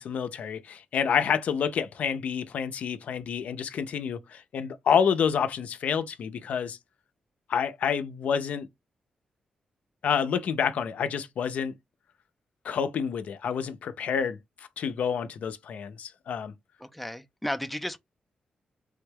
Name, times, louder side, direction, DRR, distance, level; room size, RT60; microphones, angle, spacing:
voice 1, 0.0-6.8 7.5-8.7 10.0-11.7 12.6-14.4 14.8-16.5, left 7 dB, 75° left, 0.4 m, -28 dB
voice 2, 16.8-18.0, left 1 dB, ahead, 0.3 m, -33 dB
3.3 x 2.2 x 3.3 m
cardioid pair, 100°, 3 cm